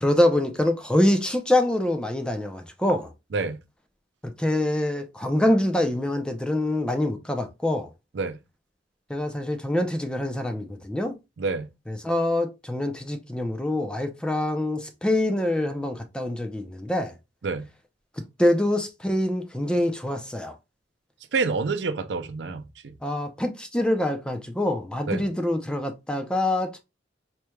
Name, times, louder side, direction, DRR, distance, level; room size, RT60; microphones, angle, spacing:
voice 1, 0.0-3.1 4.4-7.9 9.1-11.2 11.9-17.1 18.4-20.5 23.0-26.8, left 1 dB, 5° left, 0.5 m, -25 dB
voice 2, 11.4-11.7 17.4-17.7 21.3-22.6 25.1-25.3, right 4 dB, 75° right, 0.5 m, -27 dB
4.4 x 3.2 x 2.2 m
head